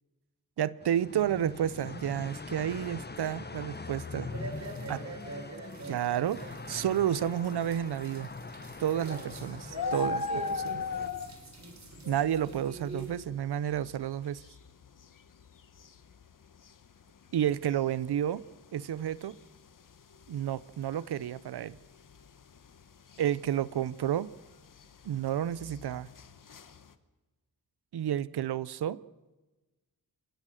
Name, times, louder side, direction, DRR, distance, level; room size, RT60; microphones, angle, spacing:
voice 1, 0.6-4.3 4.9-5.0 5.9-8.3 8.8-10.8 12.1-14.4 17.3-18.4 18.7-19.4 20.3-21.8 23.2-24.3 25.0-26.1 27.9-29.0, right 10 dB, 90° right, 0.7 m, -31 dB
sound 1, 0.8-11.1, left 4 dB, 25° left, 1.1 m, -43 dB
sound 2, 4.3-13.2, right 3 dB, 45° right, 3.8 m, -45 dB
sound 3, 9.1-26.9, left 4 dB, 55° left, 1.2 m, -41 dB
27.5 x 19.5 x 6.4 m
wide cardioid pair, 135°, 38 cm